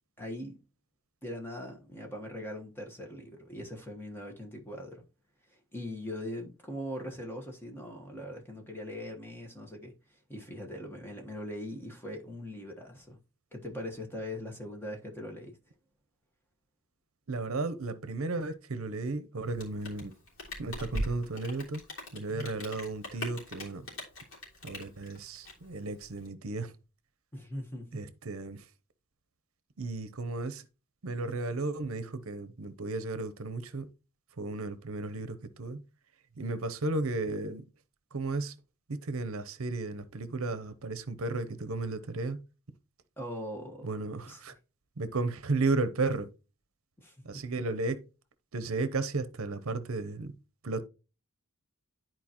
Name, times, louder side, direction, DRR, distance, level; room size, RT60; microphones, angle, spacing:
voice 1, 0.2-0.6 1.2-5.0 5.5-9.9 10.3-13.2 13.5-15.6 27.3-27.9 43.2-43.9 44.3-44.4 47.0-47.1, left 1 dB, 10° left, 1.2 m, -41 dB
voice 2, 17.3-20.1 20.6-21.8 22.1-23.9 24.6-26.7 27.9-28.7 29.8-30.6 31.0-33.9 34.4-35.8 36.4-37.6 38.1-38.5 38.9-42.4 43.8-44.5 45.0-46.3 47.2-48.0 48.5-50.3 50.6-50.8, right 3 dB, 70° right, 0.7 m, -34 dB
Rain, 19.4-26.3, left 1 dB, 60° left, 3.3 m, -40 dB
11.0 x 4.5 x 2.9 m
head